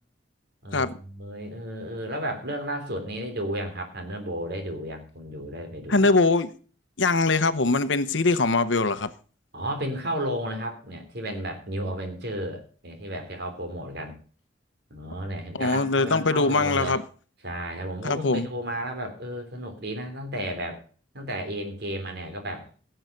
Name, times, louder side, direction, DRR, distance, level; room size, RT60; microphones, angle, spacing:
voice 1, 0.6-6.1 9.5-14.2 14.9-17.0 17.4-20.8 21.1-22.7, right 1 dB, 55° right, 3.3 m, -33 dB
voice 2, 5.9-6.5 7.0-9.1 15.6-17.0 18.0-18.5, left 3 dB, 70° left, 0.9 m, -22 dB
16.5 x 7.9 x 5.2 m
head